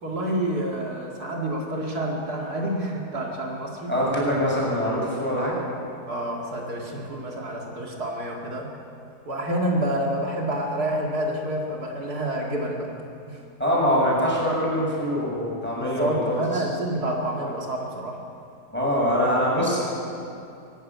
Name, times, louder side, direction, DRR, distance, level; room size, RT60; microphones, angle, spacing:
voice 1, 0.0-3.9 6.1-8.7 9.3-12.9 13.3-13.4 15.8-18.2, right 1 dB, 75° right, -1 dB, 2.8 m, -28 dB
voice 2, 3.9-5.6 13.6-16.6 18.7-19.8, equal, 5° left, -5 dB, 7.2 m, -23 dB
25.0 x 11.5 x 9.5 m, 2.6 s
omnidirectional pair, 1.7 m